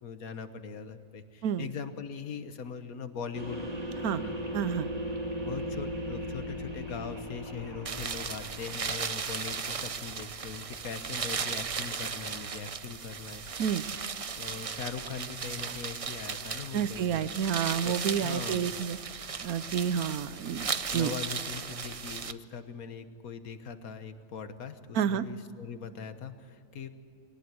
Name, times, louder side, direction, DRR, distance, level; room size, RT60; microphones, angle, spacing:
voice 1, 0.0-3.7 4.1-4.3 5.4-13.4 14.4-17.2 17.8-18.6 20.9-26.9, left 6 dB, 75° left, 10 dB, 1.6 m, -41 dB
sound 1, 3.3-8.8, equal, 25° right, 2.4 m, -37 dB
voice 2, 4.5-4.9 13.6-13.8 16.7-19.0 19.4-21.1 24.9-25.2, right 8 dB, 80° right, 15 dB, 1.2 m, -29 dB
sound 2, 7.8-22.3, right 5 dB, 50° right, 0.4 m, -36 dB
22.0 x 19.0 x 7.9 m, 2.5 s
omnidirectional pair, 1.5 m